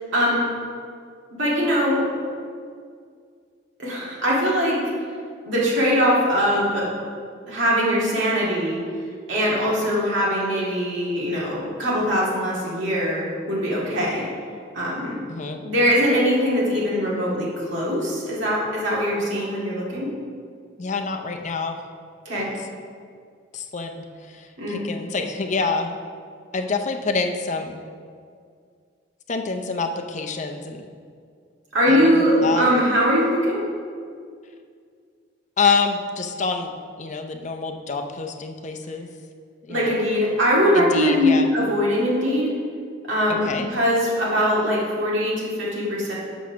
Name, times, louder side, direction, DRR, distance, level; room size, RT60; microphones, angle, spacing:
voice 1, 0.1-0.4 1.4-2.0 3.8-4.8 5.4-6.9 7.5-8.8 9.3-14.2 14.7-15.2 15.6-20.1 22.3-22.5 24.6-24.8 31.7-33.6 39.7-42.5 43.1-46.1, equal, 80° right, -6 dB, 2.1 m, -21 dB
voice 2, 15.3-15.6 20.8-21.8 22.3-22.7 23.5-26.0 26.5-27.8 29.3-30.9 31.9-32.7 35.6-36.7 37.0-39.1 39.6-40.0 40.7-41.5 43.3-43.7, left 4 dB, 40° left, 5 dB, 0.5 m, -27 dB
6.2 x 6.1 x 5.7 m, 2.2 s
head